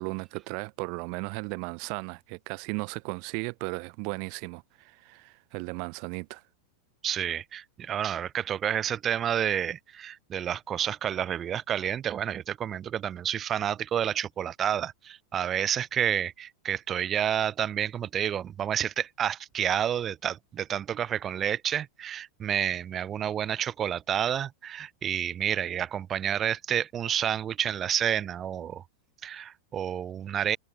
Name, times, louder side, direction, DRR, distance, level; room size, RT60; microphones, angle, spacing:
voice 1, 0.0-6.4, right 40 dB or more, 45° right, 2.2 m, -36 dB
voice 2, 7.0-28.8 29.2-30.6, right 9 dB, 25° right, 0.3 m, -29 dB
figure-of-eight pair, 90°, 0 cm